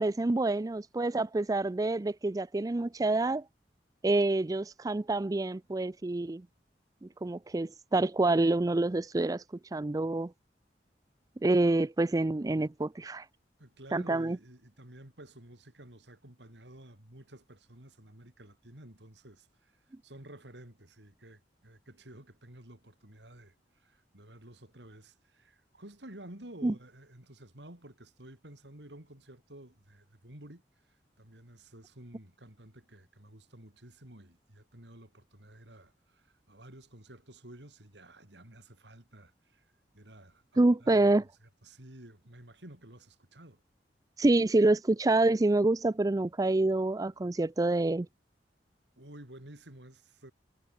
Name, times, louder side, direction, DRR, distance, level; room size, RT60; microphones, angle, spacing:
voice 1, 0.0-3.4 4.0-6.4 7.0-9.4 9.7-10.3 11.4-13.3 13.9-14.4 26.6-26.7 40.6-41.2 44.2-48.1, right 2 dB, 20° right, 0.4 m, -27 dB
voice 2, 13.6-19.8 20.0-30.6 31.2-39.7 39.9-43.6 49.0-50.3, right 1 dB, 80° right, 4.7 m, -52 dB
head